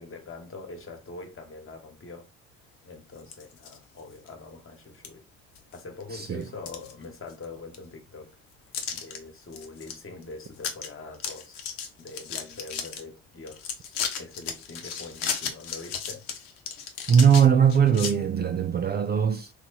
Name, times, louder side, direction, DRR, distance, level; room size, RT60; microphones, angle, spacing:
voice 1, 0.0-2.3 2.8-5.2 5.7-8.4 8.9-11.6 12.0-16.2, left 3 dB, 35° left, 1.3 m, -43 dB
sound 1, 3.2-3.8 4.3-4.4 5.0-5.1 5.6-6.0 6.4-7.4 7.7-7.8 8.7-9.2 9.5-9.9 10.2-10.3 10.6-10.9 11.1-13.0 13.5-18.1, left 7 dB, 80° left, 0.9 m, -34 dB
voice 2, 6.1-6.4 17.1-19.5, right 7 dB, 30° right, 0.4 m, -20 dB
3.2 x 2.1 x 4.0 m
hypercardioid pair, 65°, 37 cm